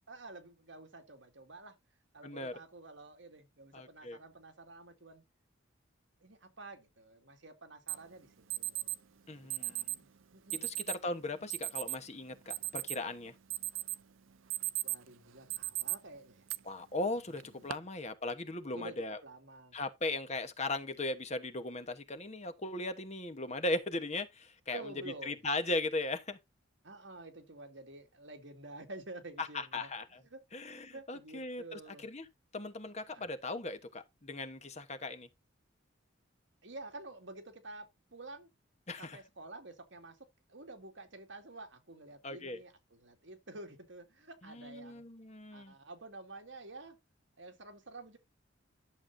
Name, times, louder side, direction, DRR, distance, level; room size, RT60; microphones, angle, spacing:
voice 1, 0.1-1.8 2.1-5.2 6.2-8.9 9.3-9.9 10.3-10.7 14.8-16.5 17.3-17.7 18.7-19.0 19.2-19.8 24.7-25.4 26.8-29.9 30.3-30.4 30.7-32.1 33.1-33.2 36.6-38.5 39.0-40.2 40.5-45.0 45.5-47.0 47.4-48.2, right 2 dB, 65° right, 2.2 m, -50 dB
voice 2, 2.2-2.5 3.7-4.2 9.3-10.0 10.6-13.3 16.6-19.2 19.7-24.9 25.2-26.4 29.4-30.2 30.5-32.2 32.5-35.3 38.9-39.2 42.2-42.6 44.4-45.7, left 2 dB, 35° left, 1.2 m, -38 dB
Alarm, 7.9-8.0 8.5-9.0 9.5-10.0 10.5-11.0 11.5-12.0 12.3-13.1 13.5-14.0 14.3-15.1 15.5-15.9 16.5-16.6 17.4-17.7, right 17 dB, 85° right, 0.6 m, -36 dB
11.5 x 7.1 x 2.7 m
head